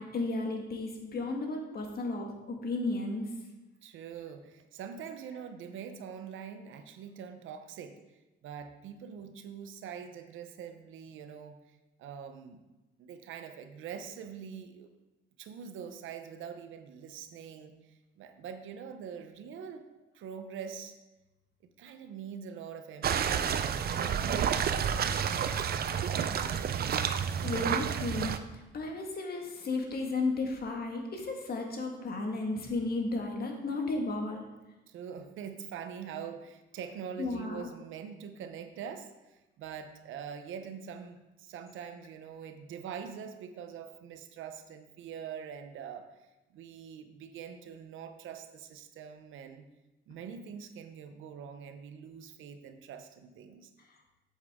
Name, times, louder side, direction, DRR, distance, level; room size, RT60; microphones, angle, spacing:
voice 1, 0.0-3.3 27.4-34.4 37.2-37.7, left 3 dB, 50° left, 2 dB, 1.7 m, -34 dB
voice 2, 3.8-8.0 8.4-11.6 12.0-12.6 13.0-14.9 15.4-19.9 20.1-20.9 21.8-24.4 24.8-26.8 34.9-46.1 46.5-49.7 50.1-53.7, right 7 dB, 80° right, 8 dB, 0.8 m, -44 dB
sound 1, 23.0-28.4, right 8 dB, 50° right, 0.5 m, -30 dB
8.3 x 7.4 x 3.6 m, 1.0 s
cardioid pair, 90°, 20 cm